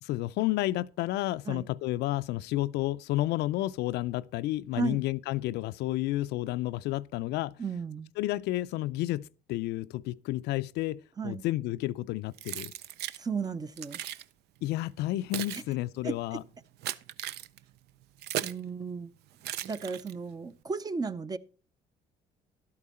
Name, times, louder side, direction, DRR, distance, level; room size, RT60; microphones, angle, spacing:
voice 1, 0.0-7.5 8.2-12.7 14.6-16.4, left 16 dB, 80° left, 0.4 m, -31 dB
voice 2, 7.6-8.1 11.2-11.4 13.2-14.0 15.5-15.6 16.0-16.2 18.4-19.1 19.6-21.4, right 5 dB, 25° right, 0.5 m, -34 dB
Keys jangling, 12.4-13.2 13.8-14.2 15.0-18.7 19.4-20.3, right 12 dB, 75° right, 0.5 m, -37 dB
12.0 x 8.6 x 4.2 m
cardioid pair, 110°, 17 cm